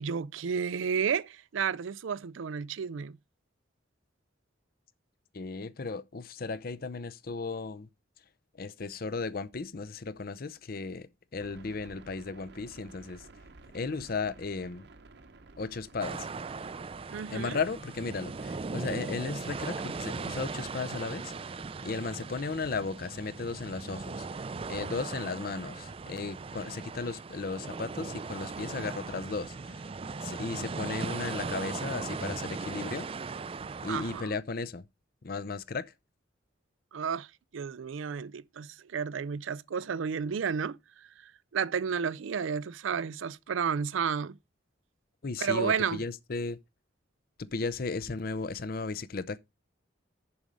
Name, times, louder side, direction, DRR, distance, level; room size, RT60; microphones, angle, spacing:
voice 1, 0.0-3.2 17.1-17.6 33.9-34.4 36.9-37.3 37.5-40.8 41.5-44.4 45.4-46.0, right 6 dB, 90° right, 0.4 m, -32 dB
voice 2, 5.3-7.9 8.6-13.2 13.7-14.9 15.6-16.3 17.3-21.5 21.8-24.4 24.7-29.7 30.2-33.1 33.8-34.9 35.2-35.9 45.2-46.6 47.4-49.4, left 4 dB, 50° left, 0.6 m, -35 dB
sound 1, 11.3-20.2, right 2 dB, 60° right, 0.8 m, -54 dB
sound 2, 16.0-34.2, right 4 dB, 30° right, 0.4 m, -38 dB
7.1 x 5.2 x 6.2 m
head